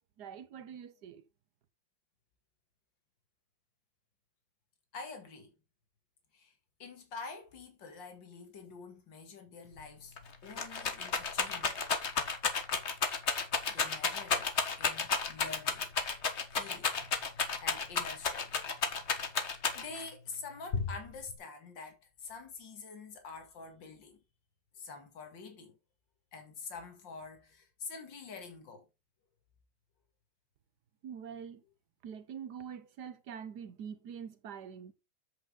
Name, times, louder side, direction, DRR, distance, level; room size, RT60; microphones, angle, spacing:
voice 1, 0.2-1.2 31.0-31.6 32.0-34.9, right 7 dB, 65° right, 1.5 m, -45 dB
voice 2, 4.9-5.5 6.3-6.5 6.8-10.2 10.4-11.8 13.7-14.5 14.8-16.0 16.5-17.3 17.6-24.2 24.7-25.8 26.3-28.9, left 4 dB, 70° left, 2.7 m, -47 dB
Rattle, 9.8-9.9 10.2-20.1 20.7-21.3, left 5 dB, 40° left, 1.4 m, -32 dB
8.2 x 6.5 x 3.8 m
omnidirectional pair, 2.1 m